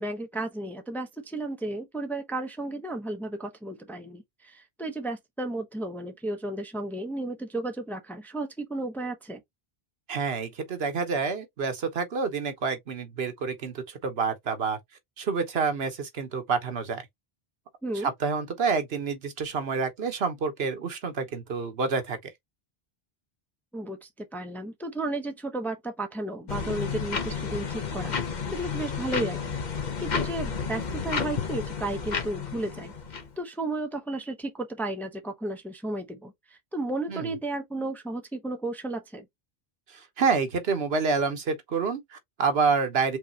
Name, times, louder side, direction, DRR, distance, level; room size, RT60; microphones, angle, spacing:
voice 1, 0.0-9.4 17.8-18.1 23.7-32.9 33.4-36.3 36.7-39.2, right 2 dB, ahead, 0.8 m, -33 dB
voice 2, 10.1-14.8 15.2-17.0 17.9-22.2 37.1-37.4 39.9-43.2, right 5 dB, 75° right, 1.3 m, -28 dB
sound 1, 26.5-33.3, left 6 dB, 45° left, 1.0 m, -31 dB
5.2 x 3.2 x 2.8 m
omnidirectional pair, 1.0 m